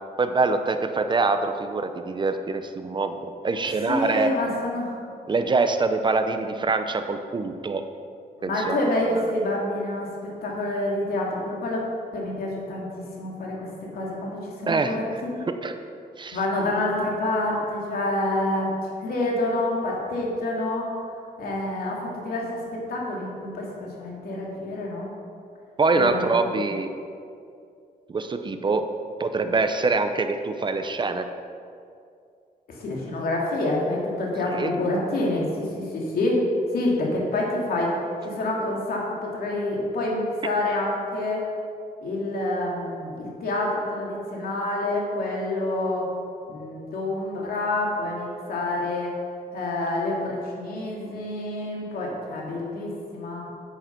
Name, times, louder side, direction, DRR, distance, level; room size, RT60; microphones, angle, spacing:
voice 1, 0.2-4.3 5.3-7.8 8.4-9.1 14.7-15.0 15.6-15.8 16.2-16.4 25.8-26.9 28.1-28.8 29.2-31.3 34.5-34.7, right 3 dB, 30° right, 8 dB, 0.7 m, -24 dB
voice 2, 3.6-5.0 8.4-11.8 12.1-12.9 13.2-15.5 16.3-18.7 19.0-20.9 21.4-25.1 25.9-26.6 29.4-29.5 32.7-36.4 36.7-38.0 38.2-41.4 42.0-46.1 46.5-49.1 49.5-53.5, left 2 dB, 80° left, -2 dB, 2.8 m, -27 dB
9.7 x 9.2 x 6.1 m, 2.4 s
cardioid pair, 125°, 15 cm